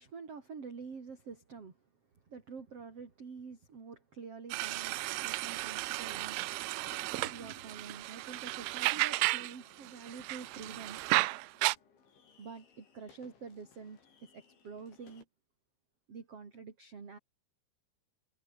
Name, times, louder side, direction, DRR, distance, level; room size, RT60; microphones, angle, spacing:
voice 1, 0.0-1.8 2.2-6.5 7.1-11.0 12.4-15.2 16.1-17.2, right 5 dB, 35° right, 4.2 m, -47 dB
sound 1, 4.5-9.6 9.9-11.8, right 20 dB, 85° right, 2.3 m, -33 dB
sound 2, 6.1-15.2, left 6 dB, 85° left, 8.2 m, -64 dB
omnidirectional pair, 5.2 m